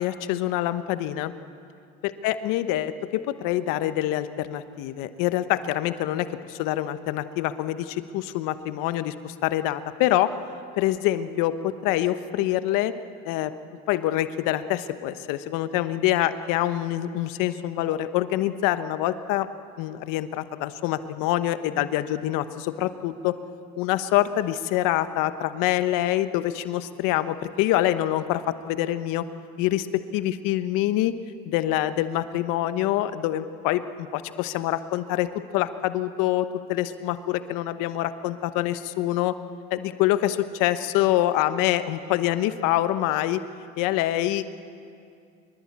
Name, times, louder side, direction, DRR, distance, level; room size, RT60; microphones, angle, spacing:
voice 1, 0.0-1.3 2.0-10.3 10.8-12.9 13.2-13.5 13.9-19.5 19.8-23.4 23.8-29.3 29.6-31.1 31.4-39.4 39.7-43.4 43.8-44.4, left 14 dB, 80° left, 12 dB, 1.2 m, -25 dB
24.0 x 22.5 x 8.6 m, 2.4 s
hypercardioid pair, 65°, 32 cm